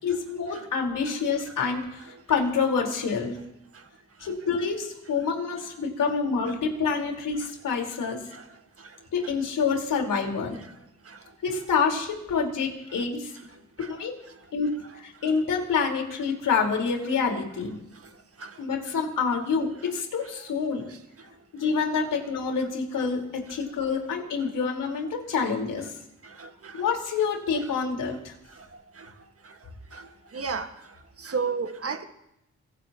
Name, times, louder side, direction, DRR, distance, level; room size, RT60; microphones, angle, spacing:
voice 1, 0.0-3.4 4.2-8.3 9.1-10.6 11.4-13.3 13.9-14.1 14.5-17.7 18.6-20.8 21.5-23.2 23.5-25.9 26.7-28.3, left 5 dB, 80° left, 1 dB, 4.6 m, -27 dB
voice 2, 30.3-30.7 31.2-32.0, right 5 dB, 45° right, 6 dB, 1.8 m, -29 dB
26.0 x 17.0 x 3.0 m, 0.85 s
supercardioid pair, 45°, 32 cm